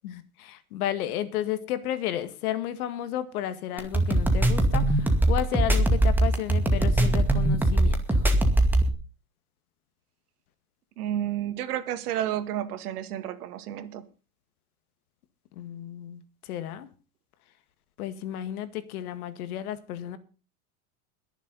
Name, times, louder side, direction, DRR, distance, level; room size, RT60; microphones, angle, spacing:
voice 1, 0.0-8.2 15.5-16.9 18.0-20.2, left 11 dB, 75° left, 2.0 m, -33 dB
sound 1, 3.8-8.9, right 1 dB, 5° right, 2.2 m, -21 dB
voice 2, 11.0-14.0, right 11 dB, 85° right, 2.0 m, -31 dB
21.5 x 7.4 x 5.4 m
supercardioid pair, 145°, 44 cm